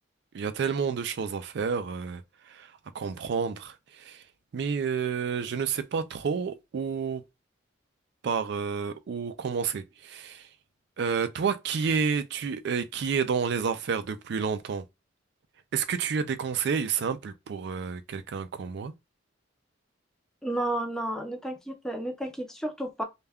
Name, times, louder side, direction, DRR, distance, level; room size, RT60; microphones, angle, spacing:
voice 1, 0.3-2.2 2.5-2.7 2.9-4.2 4.5-7.2 8.2-10.4 11.0-14.8 15.7-18.9, right 6 dB, 60° right, 0.3 m, -30 dB
voice 2, 20.4-23.0, right 1 dB, 5° left, 0.5 m, -32 dB
2.2 x 2.2 x 3.4 m
head